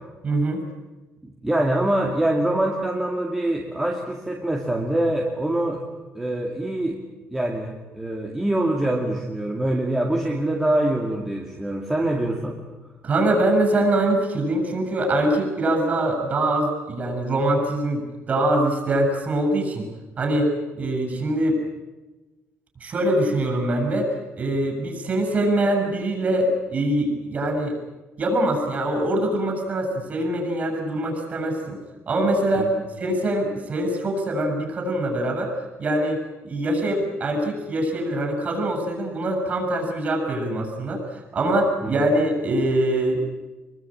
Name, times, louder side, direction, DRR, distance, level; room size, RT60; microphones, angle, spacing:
voice 1, 0.2-0.6 13.0-19.8 20.2-21.6 22.8-24.1 24.4-27.7 28.2-31.8 32.1-32.7 33.0-35.5 35.8-43.2, right 1 dB, 30° right, 4 dB, 7.7 m, -23 dB
voice 2, 1.2-5.8 6.1-7.0 7.3-12.6 32.6-32.8 41.8-41.9, right 1 dB, 10° right, 0 dB, 2.5 m, -24 dB
25.5 x 22.5 x 9.0 m, 1.1 s
cardioid pair, 175°, 5 cm